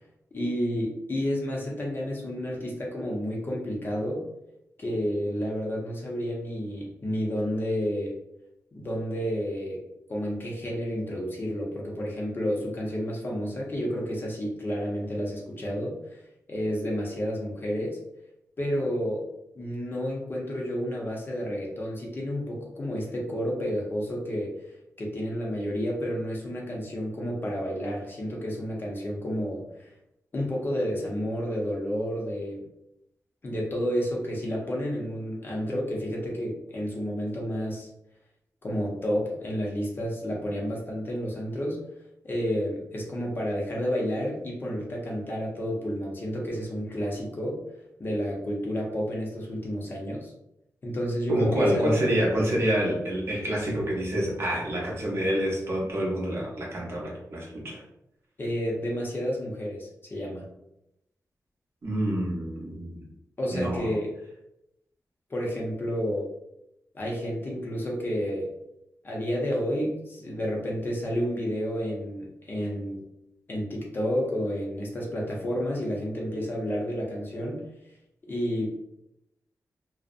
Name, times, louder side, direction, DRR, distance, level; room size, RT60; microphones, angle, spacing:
voice 1, 0.3-4.3 4.8-8.1 8.7-9.8 10.1-16.2 16.5-18.0 18.6-19.2 19.6-24.6 25.0-29.6 30.3-32.7 33.4-37.9 38.6-41.8 42.2-47.6 48.0-50.3 50.8-52.0 58.4-60.5 63.4-64.1 65.3-66.3 66.9-68.5 69.0-73.0 73.5-77.6 78.3-78.7, equal, 35° left, -2 dB, 0.5 m, -30 dB
voice 2, 51.3-57.8 61.8-63.1 63.5-63.9, right 1 dB, 45° right, -3 dB, 0.6 m, -27 dB
2.5 x 2.0 x 2.4 m, 0.83 s
wide cardioid pair, 165°, 6 cm